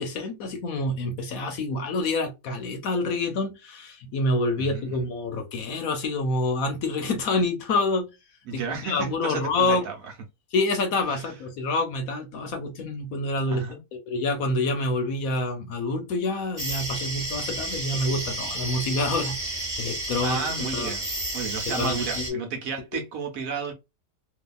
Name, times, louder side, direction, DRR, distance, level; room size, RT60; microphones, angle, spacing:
voice 1, 0.0-8.1 8.5-9.8 10.5-13.6 13.9-20.9 21.8-22.4, left 2 dB, 65° left, 1.0 m, -27 dB
voice 2, 4.6-5.0 8.5-10.1 11.1-11.3 13.5-13.8 20.2-21.1 21.3-23.7, right 5 dB, 60° right, 1.1 m, -32 dB
sound 1, 16.6-22.3, right 1 dB, 20° right, 1.2 m, -31 dB
2.7 x 2.6 x 2.2 m
omnidirectional pair, 1.8 m